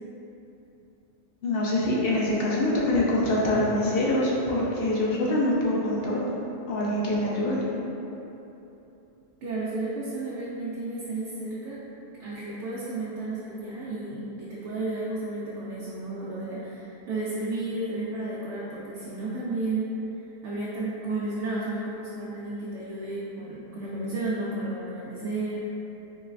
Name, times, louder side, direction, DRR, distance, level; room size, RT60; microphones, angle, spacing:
voice 1, 1.4-6.3 6.7-7.6, left 1 dB, 65° left, -5 dB, 0.7 m, -24 dB
voice 2, 9.4-11.8 12.2-20.0 20.4-25.6, right 2 dB, 90° right, -8 dB, 0.9 m, -32 dB
3.8 x 3.2 x 2.4 m, 3.0 s
omnidirectional pair, 1.2 m